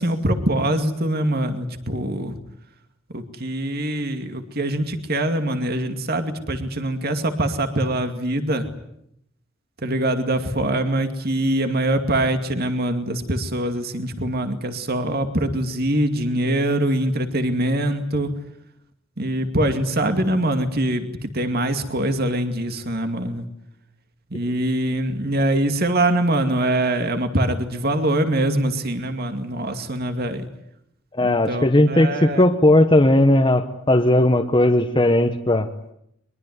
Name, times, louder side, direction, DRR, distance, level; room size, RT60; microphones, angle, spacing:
voice 1, 0.0-2.4 3.1-8.7 9.8-18.3 19.2-23.5 24.3-30.5 31.2-32.4, right 1 dB, 50° right, 7 dB, 2.4 m, -23 dB
voice 2, 31.2-35.7, left 1 dB, 25° left, 4 dB, 1.2 m, -17 dB
23.0 x 22.0 x 9.6 m, 0.77 s
head